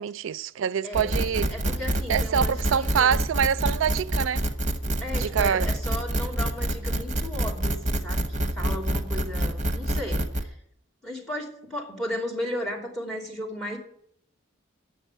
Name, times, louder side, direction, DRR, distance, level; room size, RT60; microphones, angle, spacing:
voice 1, 0.0-1.4 2.1-4.4 4.9-5.7, right 7 dB, 80° right, 0.4 m, -25 dB
sound 1, 0.9-10.4, right 1 dB, 35° right, 1.0 m, -26 dB
voice 2, 1.5-3.1 5.0-10.6 11.0-13.8, left 1 dB, ahead, 2.9 m, -35 dB
9.8 x 7.6 x 8.0 m
head